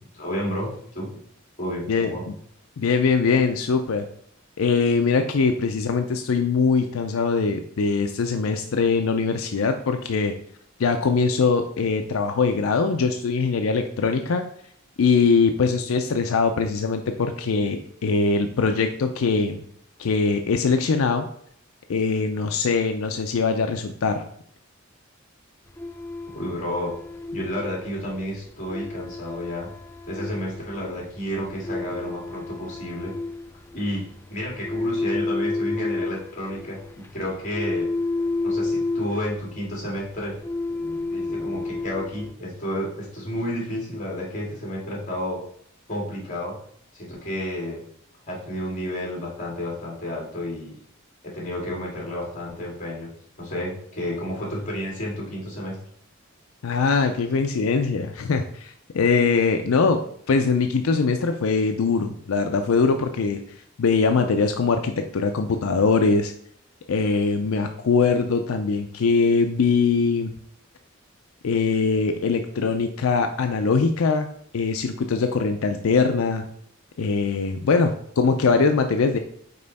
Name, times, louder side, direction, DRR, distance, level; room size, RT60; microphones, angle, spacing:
voice 1, 0.1-1.1 1.6-2.2 26.3-26.9 27.3-29.7 30.1-33.1 33.7-36.8 37.1-37.9 38.4-40.3 41.1-45.4 45.9-46.6 46.9-47.8 48.3-50.7 51.2-53.1 53.4-55.8, equal, 40° left, -3 dB, 2.4 m, -31 dB
voice 2, 1.9-2.3 2.8-4.1 4.6-10.4 10.8-14.5 15.0-19.6 20.0-21.3 21.9-24.2 56.6-63.4 63.8-66.3 66.9-70.3 71.4-74.3 74.5-76.5 77.0-79.2, left 4 dB, 85° left, 6 dB, 0.5 m, -22 dB
sound 1, 25.7-42.3, left 3 dB, 10° left, 0.3 m, -31 dB
5.4 x 4.3 x 4.1 m, 0.65 s
head